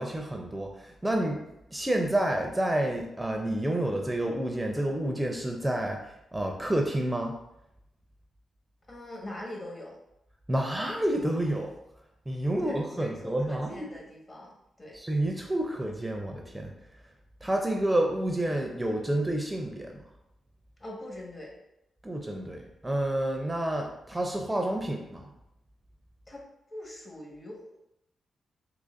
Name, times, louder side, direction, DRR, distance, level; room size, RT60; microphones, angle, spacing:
voice 1, 0.0-1.4 1.7-6.0 6.3-7.4 10.5-11.7 12.3-13.9 14.9-16.7 17.4-20.0 22.0-25.3, right 1 dB, 15° right, 2 dB, 0.5 m, -29 dB
voice 2, 8.9-10.0 12.4-14.5 14.8-15.0 20.8-21.5 26.3-27.8, left 1 dB, 40° left, -2 dB, 1.3 m, -42 dB
3.8 x 2.9 x 2.5 m, 0.82 s
supercardioid pair, 55°, 0 cm